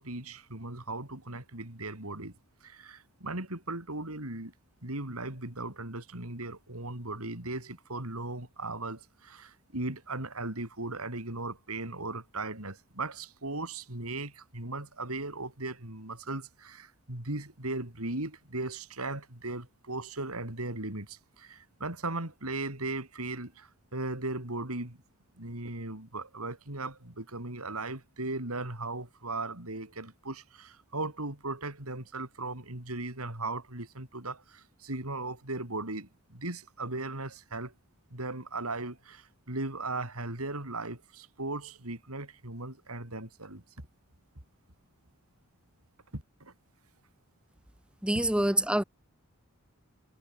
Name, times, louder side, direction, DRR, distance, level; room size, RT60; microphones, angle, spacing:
voice 1, 0.0-4.5 4.8-25.0 25.4-37.7 38.1-43.6 46.1-46.5 48.1-48.2, right 2 dB, 85° right, 5.3 m, -37 dB
voice 2, 48.0-48.8, right 1 dB, 5° right, 1.3 m, -26 dB
head